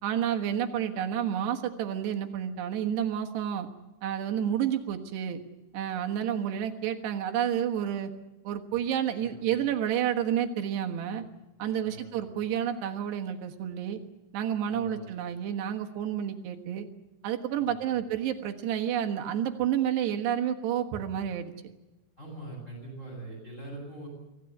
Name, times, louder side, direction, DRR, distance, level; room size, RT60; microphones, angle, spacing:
voice 1, 0.0-3.7 4.0-5.4 5.7-8.1 8.5-11.3 11.6-14.0 14.3-16.9 17.2-21.5, right 9 dB, 70° right, 4 dB, 3.5 m, -30 dB
voice 2, 9.2-9.6 11.8-12.2 14.7-15.1 17.6-18.0 22.2-24.1, right 2 dB, 15° left, -3 dB, 8.3 m, -43 dB
25.0 x 16.0 x 9.7 m, 1.1 s
omnidirectional pair, 5.1 m